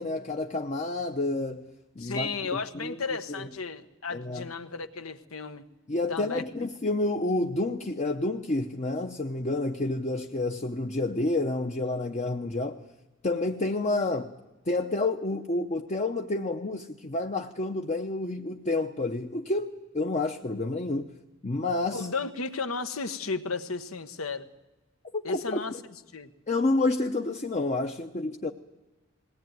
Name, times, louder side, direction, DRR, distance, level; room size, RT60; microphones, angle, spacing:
voice 1, 0.0-1.7 2.0-3.0 3.4-3.5 4.1-4.5 5.9-12.8 13.2-14.3 14.7-21.1 21.4-22.1 25.1-25.6 26.5-28.5, left 2 dB, 35° left, 0.8 m, -29 dB
voice 2, 2.0-5.7 6.1-6.4 21.9-24.5 25.2-25.7 26.1-26.3, left 4 dB, 85° left, 1.2 m, -34 dB
20.5 x 18.0 x 9.3 m
head